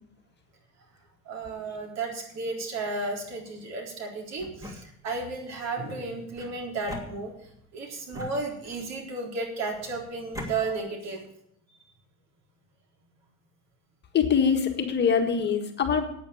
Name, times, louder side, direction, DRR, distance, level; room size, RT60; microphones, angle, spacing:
voice 1, 1.3-7.3 7.7-11.2, right 3 dB, 55° right, 1 dB, 3.9 m, -33 dB
sound 1, 4.4-5.3 6.3-7.6 8.1-9.0 9.7-10.5, left 1 dB, 10° right, 2.5 m, -42 dB
voice 2, 14.1-16.0, left 6 dB, 35° left, 5 dB, 1.6 m, -23 dB
9.2 x 9.1 x 8.5 m, 0.71 s
cardioid pair, 120°, 31 cm